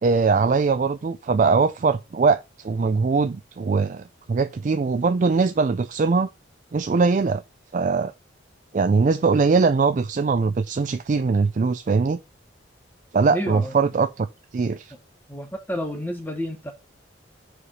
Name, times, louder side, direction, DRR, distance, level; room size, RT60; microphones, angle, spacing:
voice 1, 0.0-6.3 6.7-7.4 7.7-8.1 8.7-12.2 13.1-14.3 14.5-14.9, right 4 dB, 40° right, 0.4 m, -21 dB
voice 2, 13.3-13.8 15.3-16.7, equal, 10° left, 1.2 m, -30 dB
5.0 x 4.9 x 5.5 m
head